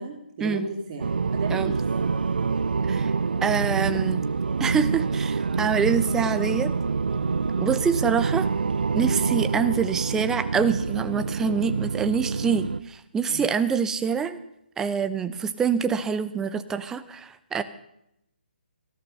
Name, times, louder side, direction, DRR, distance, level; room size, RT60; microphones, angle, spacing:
voice 1, 0.0-2.2 13.3-13.5, right 3 dB, 30° right, -1 dB, 2.7 m, -35 dB
sound 1, 1.0-12.8, right 4 dB, 65° right, 0.6 m, -26 dB
voice 2, 3.4-4.2 4.6-6.7 7.6-8.5 8.9-14.4 14.8-17.6, right 6 dB, 10° right, 11 dB, 0.8 m, -25 dB
15.0 x 13.0 x 5.5 m, 0.80 s
figure-of-eight pair, 140°, 6 cm